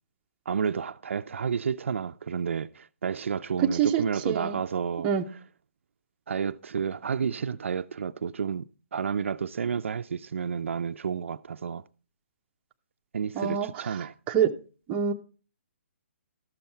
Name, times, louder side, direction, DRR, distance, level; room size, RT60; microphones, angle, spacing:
voice 1, 0.5-5.1 6.3-11.8 13.1-14.1, right 6 dB, 70° right, 0.4 m, -31 dB
voice 2, 3.6-4.6 5.0-5.3 13.4-14.5 14.9-15.1, right 8 dB, 15° right, 0.5 m, -26 dB
13.0 x 6.9 x 4.4 m
hypercardioid pair, 160°, 7 cm